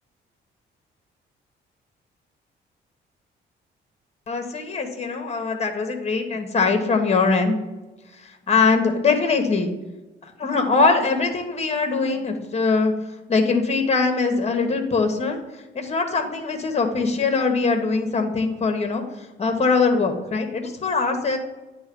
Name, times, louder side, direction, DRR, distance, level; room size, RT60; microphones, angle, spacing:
voice 1, 4.3-7.6 8.1-9.7 10.2-12.9 13.3-21.4, left 4 dB, 35° left, 5 dB, 1.3 m, -22 dB
9.7 x 3.4 x 5.4 m, 1.1 s
cardioid pair, 90°, 20 cm